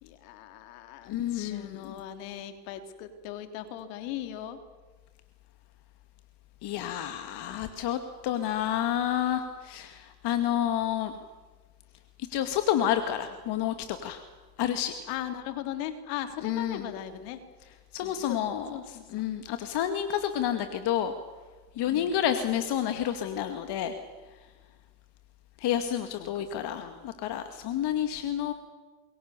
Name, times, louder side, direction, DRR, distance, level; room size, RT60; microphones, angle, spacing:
voice 1, 0.0-4.6 15.1-17.4 18.0-18.4 18.7-19.3 21.9-22.2 26.2-27.0 28.1-28.2, left 11 dB, 70° left, 8 dB, 3.3 m, -39 dB
voice 2, 1.1-2.0 6.6-11.1 12.3-14.2 14.6-14.9 16.4-16.9 17.9-21.1 21.8-23.9 25.6-28.5, left 10 dB, 55° left, 7 dB, 2.3 m, -29 dB
27.5 x 22.5 x 6.9 m, 1.3 s
hypercardioid pair, 85°, 48 cm